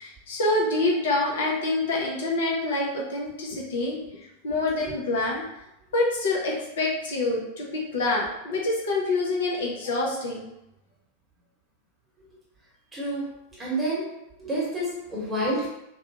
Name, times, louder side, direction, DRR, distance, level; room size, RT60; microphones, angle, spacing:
voice 1, 0.0-5.4 5.9-10.5, left 2 dB, 60° left, -3 dB, 0.7 m, -26 dB
voice 2, 12.9-13.3 13.6-14.1 14.4-15.7, right 1 dB, 10° right, -7 dB, 1.1 m, -28 dB
2.3 x 2.3 x 2.8 m, 0.85 s
figure-of-eight pair, 90°, 0 cm